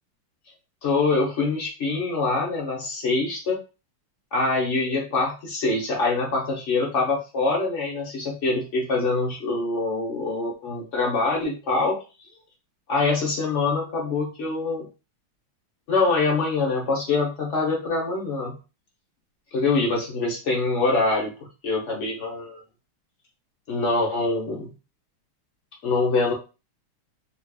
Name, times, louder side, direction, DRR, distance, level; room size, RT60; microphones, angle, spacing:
voice 1, 0.8-3.6 4.3-12.0 12.9-14.8 15.9-18.6 19.5-22.6 23.7-24.7 25.8-26.3, left 3 dB, 55° left, -2 dB, 0.8 m, -24 dB
4.1 x 2.7 x 2.3 m, 0.32 s
omnidirectional pair, 2.4 m